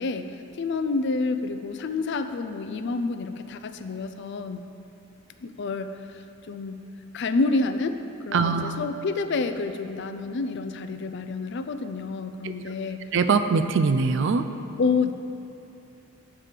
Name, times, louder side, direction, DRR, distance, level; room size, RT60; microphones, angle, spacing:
voice 1, 0.0-4.6 5.4-6.8 7.1-8.0 8.3-13.0 14.8-15.1, left 3 dB, 55° left, 9 dB, 0.4 m, -28 dB
voice 2, 8.3-8.7 13.1-14.4, right 5 dB, 55° right, 9 dB, 0.4 m, -22 dB
7.4 x 4.8 x 6.6 m, 2.8 s
head